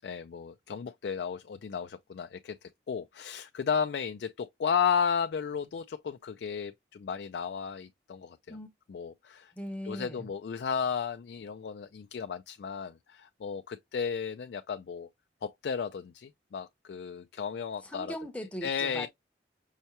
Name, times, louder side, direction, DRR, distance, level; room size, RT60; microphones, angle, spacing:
voice 1, 0.0-8.6 8.9-9.5 9.8-15.1 15.4-18.2 18.6-19.1, left 6 dB, 70° left, 0.3 m, -34 dB
voice 2, 9.5-10.3 17.8-19.1, equal, 5° left, 0.6 m, -39 dB
5.5 x 2.1 x 2.8 m
head